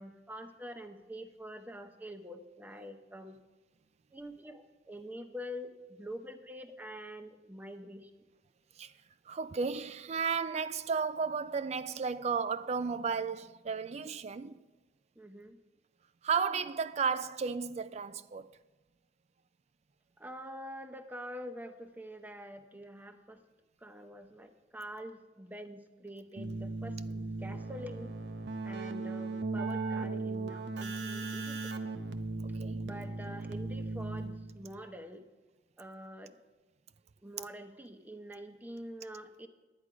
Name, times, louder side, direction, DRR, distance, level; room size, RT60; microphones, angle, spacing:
voice 1, 0.0-3.4 4.1-8.1 15.2-15.6 20.2-23.4 23.8-28.1 28.6-31.7 32.8-35.3 35.8-36.4 37.2-39.5, equal, 10° right, 0.8 m, -46 dB
voice 2, 9.3-14.6 16.2-18.5 32.4-32.9, right 5 dB, 40° right, 0.4 m, -33 dB
Keyboard (musical), 26.4-34.7, right 3 dB, 80° right, 0.8 m, -37 dB
11.0 x 9.5 x 4.9 m
head